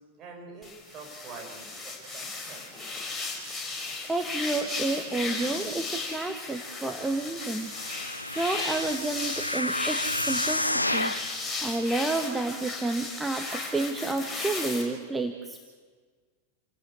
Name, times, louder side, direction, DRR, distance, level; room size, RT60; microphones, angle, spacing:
voice 1, 0.0-2.7, right 4 dB, 30° right, 1 dB, 6.4 m, -46 dB
sound 1, 0.6-14.8, left 3 dB, 10° left, 5.6 m, -35 dB
voice 2, 4.1-7.7 8.3-11.1 11.6-15.6, right 2 dB, 10° right, 4 dB, 1.6 m, -30 dB
sound 2, 7.7-11.3 11.9-12.0, left 1 dB, 85° left, 0.7 m, -30 dB
28.5 x 17.5 x 8.3 m, 1.5 s
figure-of-eight pair, 90°, 0 cm